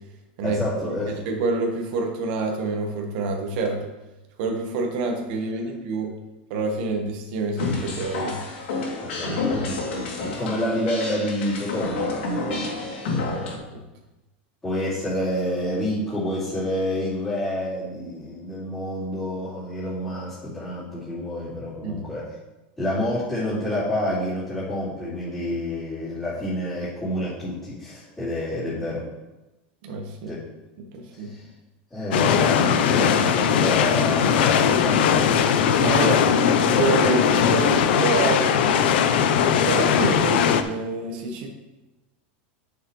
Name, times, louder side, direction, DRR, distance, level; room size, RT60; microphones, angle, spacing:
voice 1, 0.4-1.2 9.0-9.3 9.6-9.8 10.2-13.6 14.6-22.3 22.8-29.1 30.3-30.4 31.1-31.4 31.9-35.3 35.8-36.4, left 1 dB, 10° left, -15 dB, 2.9 m, -29 dB
voice 2, 1.2-3.8 4.4-6.1 6.5-8.4 9.3-9.8 13.7-13.8 21.8-22.0 29.8-30.3 30.8-31.3 35.8-36.3 36.6-38.5 39.6-41.5, right 3 dB, 50° right, 1 dB, 1.5 m, -27 dB
sound 1, 7.6-13.6, left 3 dB, 90° left, 2.9 m, -29 dB
sound 2, 32.1-40.6, left 7 dB, 65° left, 0.7 m, -19 dB
9.7 x 6.9 x 3.3 m, 1.0 s
supercardioid pair, 170°, 6 cm